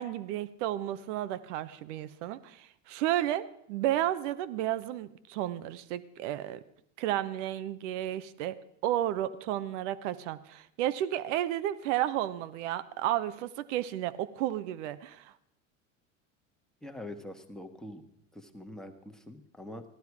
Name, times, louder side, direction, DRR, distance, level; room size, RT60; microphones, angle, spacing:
voice 1, 0.0-6.6 7.0-15.3, right 13 dB, 65° right, 15 dB, 0.9 m, -32 dB
voice 2, 16.8-18.0 18.3-19.8, left 1 dB, ahead, 4 dB, 1.4 m, -44 dB
15.5 x 12.0 x 4.8 m, 0.74 s
hypercardioid pair, 85°, 38 cm